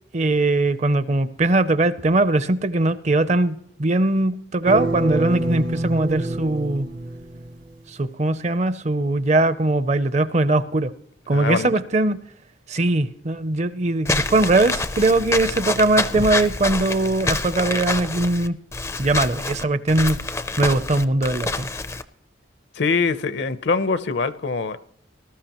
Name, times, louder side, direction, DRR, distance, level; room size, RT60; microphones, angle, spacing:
voice 1, 0.1-6.9 7.9-10.9 11.3-12.2 12.7-18.6 19.0-20.2 20.6-21.7, right 2 dB, 35° right, 0.5 m, -20 dB
sound 1, 4.6-7.7, right 1 dB, 70° right, 1.5 m, -26 dB
voice 2, 11.3-11.7 22.7-24.8, left 4 dB, 65° left, 0.7 m, -23 dB
Walk footsteps / Squeak, 14.1-22.0, left 3 dB, 15° left, 0.4 m, -27 dB
19.5 x 12.5 x 3.0 m
head